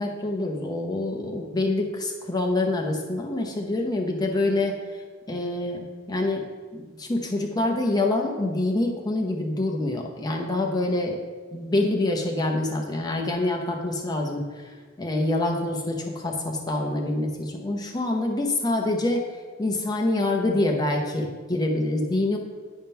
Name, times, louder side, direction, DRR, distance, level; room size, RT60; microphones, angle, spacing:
voice 1, 0.0-5.0 5.3-6.5 6.7-11.2 11.5-19.2 19.6-22.4, left 2 dB, 20° left, 1 dB, 0.7 m, -26 dB
10.0 x 3.6 x 5.5 m, 1.5 s
head